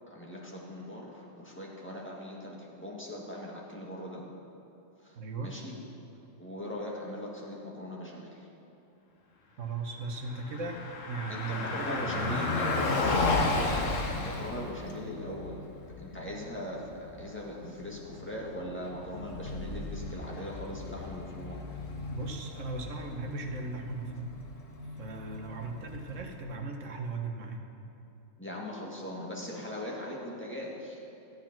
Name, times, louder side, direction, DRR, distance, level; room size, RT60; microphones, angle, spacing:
voice 1, 0.1-4.3 5.0-5.8 6.4-8.5 11.3-13.0 14.1-15.6 16.0-21.6 28.4-31.0, left 1 dB, 10° left, -4 dB, 1.8 m, -40 dB
voice 2, 5.1-5.5 9.6-10.8 11.1-12.9 22.1-24.4 25.0-27.6, right 3 dB, 75° right, 3 dB, 1.5 m, -37 dB
Car passing by, 10.2-26.3, left 3 dB, 80° left, 1.5 m, -35 dB
13.5 x 8.2 x 5.9 m, 2.9 s
omnidirectional pair, 1.3 m